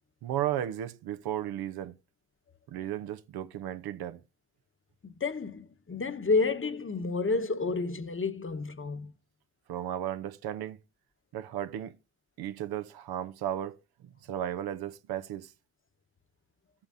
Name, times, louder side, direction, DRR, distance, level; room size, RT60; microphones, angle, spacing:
voice 1, 0.2-1.9 2.7-4.2 9.7-10.8 11.3-11.9 12.4-15.5, right 11 dB, 90° right, 0.7 m, -35 dB
voice 2, 5.0-9.1, left 4 dB, 35° left, 1.0 m, -30 dB
14.5 x 8.5 x 2.6 m
supercardioid pair, 45°, 37 cm